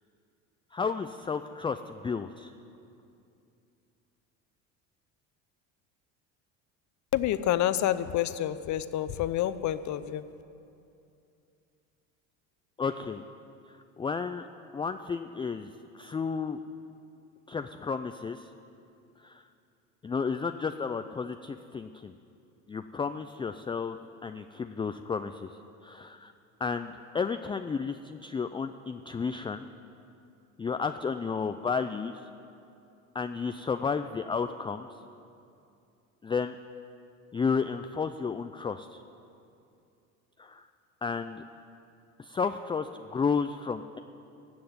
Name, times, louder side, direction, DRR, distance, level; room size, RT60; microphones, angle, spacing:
voice 1, 0.7-2.5 12.8-13.2 13.7-14.5 14.7-15.7 15.9-16.6 17.5-18.5 19.2-19.4 20.0-22.1 22.7-26.3 26.6-29.7 30.6-32.1 33.1-34.9 36.2-36.6 37.3-39.0 40.4-40.7 41.0-41.4 42.2-44.0, left 5 dB, 15° left, 8 dB, 0.4 m, -32 dB
voice 2, 7.1-10.2, left 12 dB, 50° left, 13 dB, 0.7 m, -28 dB
15.5 x 7.8 x 9.4 m, 2.6 s
supercardioid pair, 90°, 38 cm